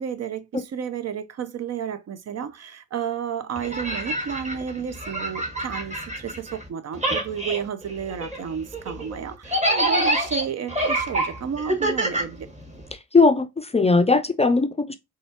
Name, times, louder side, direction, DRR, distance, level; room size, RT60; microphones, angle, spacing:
voice 1, 0.0-12.5, right 7 dB, 45° right, 0.5 m, -32 dB
sound 1, 3.6-6.7 6.9-12.9, right 1 dB, 20° right, 1.3 m, -27 dB
voice 2, 13.1-15.0, left 3 dB, 20° left, 0.4 m, -19 dB
4.1 x 2.4 x 2.8 m
hypercardioid pair, 45°, 35 cm